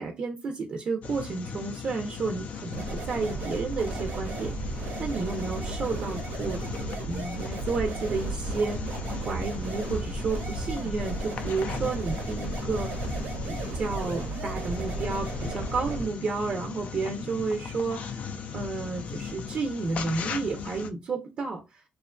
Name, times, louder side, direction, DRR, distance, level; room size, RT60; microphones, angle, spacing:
voice 1, 0.0-6.6 7.0-13.2 13.5-21.8, right 4 dB, 45° right, 0.5 m, -32 dB
sound 1, 1.0-20.9, left 6 dB, 55° left, 0.4 m, -38 dB
sound 2, 2.7-16.1, right 3 dB, 85° right, 1.1 m, -34 dB
2.8 x 2.4 x 2.2 m
cardioid pair, 120°, 3 cm